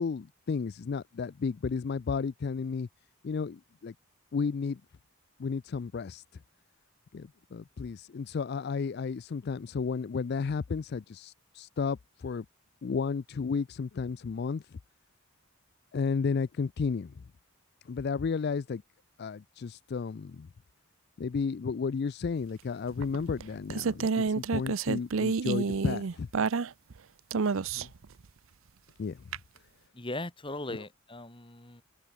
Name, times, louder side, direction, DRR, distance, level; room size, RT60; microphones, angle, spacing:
voice 1, 0.0-2.9 3.2-3.9 4.3-4.8 5.4-6.2 7.1-12.4 12.8-14.6 15.9-17.1 17.9-18.8 19.2-20.5 21.2-26.3 27.7-27.9 29.0-29.2 30.7-30.8, left 5 dB, 45° left, 0.4 m, -33 dB
sound 1, 23.0-27.0 27.3-28.0 29.3-29.4, right 5 dB, 65° right, 0.6 m, -29 dB
voice 2, 29.9-31.8, left 2 dB, 25° left, 2.1 m, -38 dB
open air
head